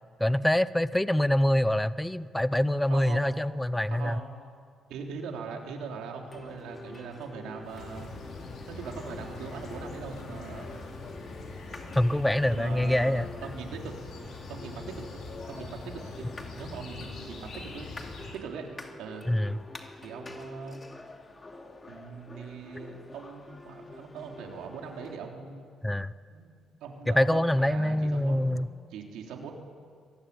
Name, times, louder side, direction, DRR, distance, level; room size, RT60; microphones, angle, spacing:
voice 1, 0.2-4.2 12.0-13.3 19.3-19.6 25.8-26.1 27.1-28.7, left 1 dB, 5° left, 15 dB, 0.7 m, -25 dB
voice 2, 2.9-3.5 3.9-4.3 4.9-8.2 8.7-10.7 12.5-13.9 14.5-16.2 16.5-19.3 20.0-20.8 21.9-25.7 26.3-26.5 26.8-29.5, right 5 dB, 90° right, 2 dB, 3.5 m, -41 dB
sound 1, 6.3-25.2, left 2 dB, 25° left, 2.7 m, -47 dB
sound 2, 7.6-18.4, left 3 dB, 70° left, 5.8 m, -43 dB
24.5 x 19.0 x 9.6 m, 2.2 s
cardioid pair, 90°, 0 cm